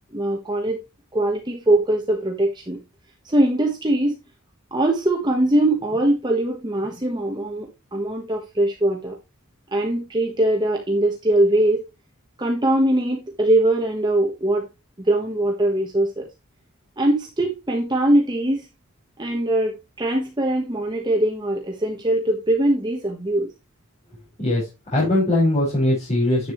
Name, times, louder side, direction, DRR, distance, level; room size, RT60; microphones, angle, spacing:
voice 1, 0.1-0.8 1.1-2.8 3.2-4.1 4.7-9.2 9.7-11.8 12.4-14.7 15.0-16.3 17.0-18.6 19.2-23.5, right 1 dB, 20° right, 1.3 m, -21 dB
voice 2, 24.4-26.5, left 1 dB, 35° left, 5.1 m, -21 dB
10.5 x 7.7 x 3.1 m
head